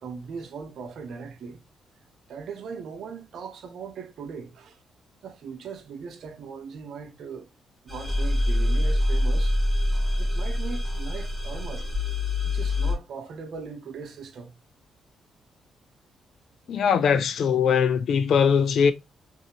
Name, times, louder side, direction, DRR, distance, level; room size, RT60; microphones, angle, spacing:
voice 1, 0.0-1.6 2.3-4.8 5.2-7.5 7.8-9.6 10.2-11.9 12.4-14.5, right 5 dB, 70° right, 0.7 m, -39 dB
sound 1, 7.9-12.9, left 1 dB, 5° left, 1.9 m, -25 dB
voice 2, 16.7-18.9, left 6 dB, 70° left, 0.5 m, -21 dB
3.7 x 2.7 x 2.8 m
cardioid pair, 70°, 0 cm